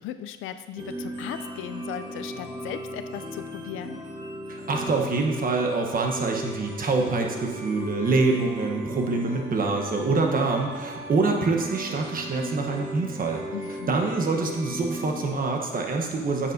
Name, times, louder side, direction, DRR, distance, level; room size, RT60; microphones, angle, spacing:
voice 1, 0.0-4.0 13.5-13.9, left 11 dB, 90° left, 10 dB, 0.5 m, -37 dB
sound 1, 0.8-15.2, right 1 dB, 20° right, 1.5 m, -37 dB
voice 2, 4.5-13.4 13.9-16.5, right 3 dB, 45° right, 2 dB, 1.2 m, -25 dB
9.1 x 7.2 x 2.8 m, 1.4 s
cardioid pair, 90°, 20 cm